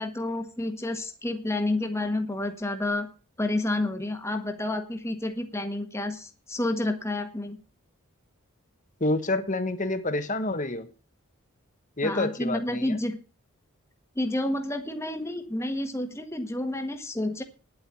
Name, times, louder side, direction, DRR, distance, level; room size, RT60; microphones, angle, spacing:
voice 1, 0.0-3.1 3.4-7.6 12.0-13.2 14.1-17.4, left 1 dB, 10° left, 6 dB, 1.5 m, -29 dB
voice 2, 9.0-10.9 12.0-13.0, left 2 dB, 35° left, 10 dB, 1.3 m, -28 dB
10.5 x 8.2 x 7.6 m, 0.36 s
head